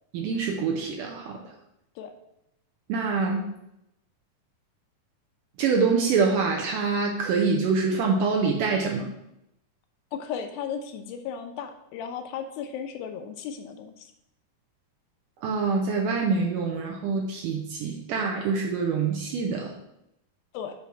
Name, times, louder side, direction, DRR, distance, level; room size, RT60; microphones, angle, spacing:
voice 1, 0.1-1.4 2.9-3.4 5.6-9.1 15.4-19.7, right 4 dB, 75° right, 1 dB, 2.0 m, -25 dB
voice 2, 10.1-14.1 20.5-20.8, left 7 dB, 85° left, 6 dB, 2.4 m, -35 dB
8.2 x 3.3 x 5.9 m, 0.82 s
omnidirectional pair, 4.4 m